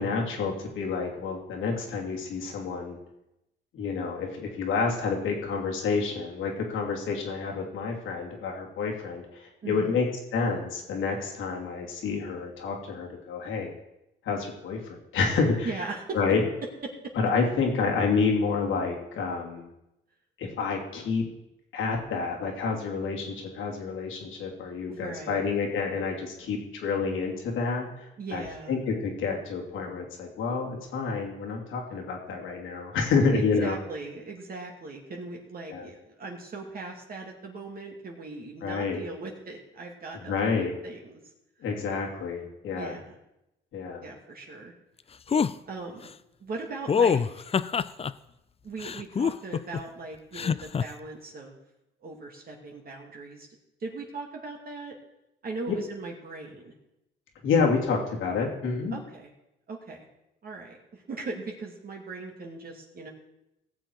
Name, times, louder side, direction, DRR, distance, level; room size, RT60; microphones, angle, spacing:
voice 1, 0.0-3.0 3.7-10.0 10.3-13.7 14.2-15.8 16.1-16.4 17.1-19.7 20.4-21.2 21.7-28.4 28.7-33.7 35.7-35.9 38.6-39.0 40.3-40.7 41.6-43.0 43.7-44.0 57.4-59.0, left 4 dB, 80° left, 0 dB, 2.9 m, -29 dB
voice 2, 9.6-10.0 15.6-16.2 24.9-25.4 28.2-28.7 33.3-41.2 42.7-43.1 44.0-44.7 45.6-46.0 46.4-47.5 48.6-51.6 52.0-53.5 53.8-54.9 55.4-56.7 58.9-59.3 59.7-60.1 60.4-63.1, right 3 dB, 50° right, 0 dB, 2.4 m, -39 dB
sound 1, 45.3-45.5 46.9-48.1 48.8-49.8 50.3-50.8, left 6 dB, 30° left, 0.5 m, -24 dB
17.5 x 7.4 x 4.7 m, 0.87 s
cardioid pair, 90°, 20 cm